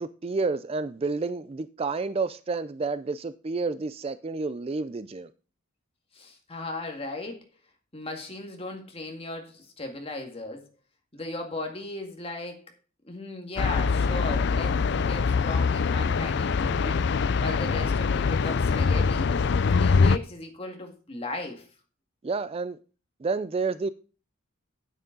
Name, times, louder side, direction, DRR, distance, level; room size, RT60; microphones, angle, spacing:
voice 1, 0.0-5.3 22.2-22.8 23.2-23.9, right 4 dB, 30° right, 0.4 m, -30 dB
voice 2, 6.1-7.5 7.9-10.6 11.1-12.6 13.0-19.3 19.7-21.7, left 2 dB, 30° left, 2.0 m, -37 dB
sound 1, 13.6-20.2, left 5 dB, 55° left, 0.4 m, -24 dB
9.3 x 9.0 x 3.9 m
head